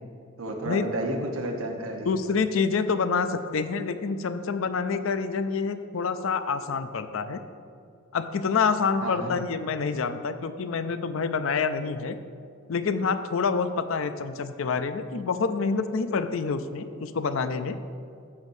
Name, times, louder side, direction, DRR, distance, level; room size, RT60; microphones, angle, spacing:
voice 1, 0.4-2.1 9.0-9.4, right 1 dB, 80° right, 2 dB, 1.1 m, -31 dB
voice 2, 2.1-7.4 8.1-12.2 12.7-17.8, left 5 dB, 65° left, 10 dB, 0.5 m, -27 dB
13.5 x 7.2 x 2.7 m, 2.4 s
head